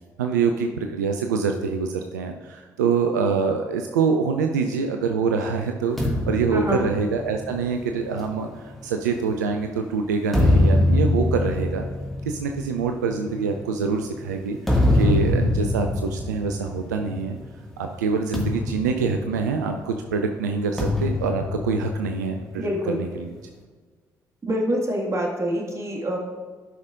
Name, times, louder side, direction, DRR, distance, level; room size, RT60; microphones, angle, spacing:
voice 1, 0.2-11.8 12.2-14.6 14.9-17.4 17.8-23.3, right 5 dB, 80° right, 5 dB, 0.4 m, -25 dB
sound 1, 6.0-9.6 10.1-17.5 17.8-18.0 18.3-19.9 20.8-22.5, left 1 dB, ahead, 1.9 m, -24 dB
voice 2, 6.5-6.9 22.6-23.1 24.4-26.2, equal, 30° right, 0 dB, 1.9 m, -26 dB
12.5 x 5.6 x 2.5 m, 1.5 s
figure-of-eight pair, 45°, 9 cm